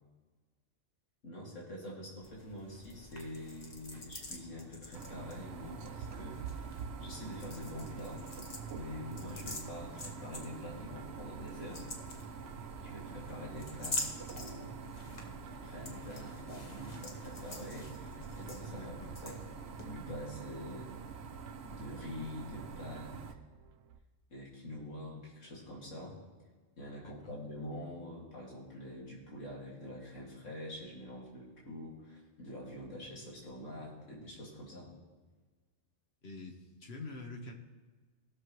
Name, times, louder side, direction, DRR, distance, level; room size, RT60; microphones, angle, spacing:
voice 1, 1.2-8.2 8.7-11.9 12.8-18.9 19.2-19.4 19.8-20.9 21.6-23.4 24.3-26.2 26.8-34.9, left 1 dB, 90° left, -5 dB, 2.6 m, -46 dB
sound 1, 2.2-19.8, left 2 dB, 35° left, 1.2 m, -47 dB
sound 2, 4.9-23.3, right 6 dB, 65° right, 0.9 m, -46 dB
sound 3, 8.6-24.0, right 7 dB, 90° right, 1.0 m, -59 dB
voice 2, 18.7-19.2 27.0-27.4 36.2-37.5, left 3 dB, 55° left, 3 dB, 1.4 m, -46 dB
18.5 x 6.7 x 3.1 m, 1.4 s
omnidirectional pair, 1.3 m